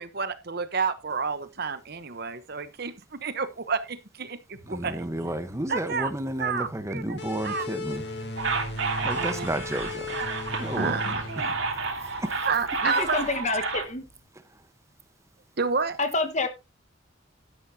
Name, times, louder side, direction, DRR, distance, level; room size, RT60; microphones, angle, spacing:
voice 1, 0.0-5.1 5.7-6.1 6.4-7.2 7.4-8.0 9.1-9.6 10.6-11.5 12.0-13.4 15.6-16.0, right 5 dB, 50° right, 1.0 m, -30 dB
sound 1, 4.5-14.2, left 2 dB, 75° left, 3.9 m, -50 dB
voice 2, 4.7-8.0 9.0-10.2 10.6-11.0 11.4-11.6 12.2-12.4, right 1 dB, 15° right, 1.0 m, -32 dB
sound 2, 7.2-12.4, left 2 dB, 55° left, 2.3 m, -37 dB
sound 3, 8.4-13.8, right 4 dB, 70° right, 2.9 m, -30 dB
voice 3, 12.8-14.0 16.0-16.5, left 3 dB, 35° left, 1.4 m, -27 dB
12.0 x 11.0 x 2.8 m
head